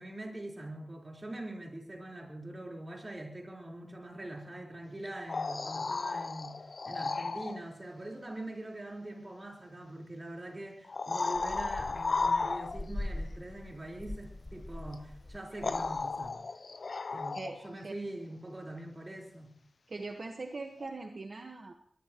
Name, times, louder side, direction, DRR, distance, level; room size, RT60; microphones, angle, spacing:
voice 1, 0.0-16.4 17.1-19.6, right 1 dB, 30° right, 0 dB, 4.2 m, -43 dB
sound 1, 5.1-7.6 9.5-9.6 10.8-13.0 14.9-15.0 15.6-17.7 20.8-20.9, left 4 dB, 65° left, 0.7 m, -34 dB
sound 2, 11.3-16.3, left 1 dB, 25° left, 1.0 m, -43 dB
voice 2, 17.3-17.9 19.9-21.7, right 3 dB, 60° right, 3 dB, 1.4 m, -41 dB
22.5 x 19.0 x 3.0 m, 0.63 s
wide cardioid pair, 90°, 0 cm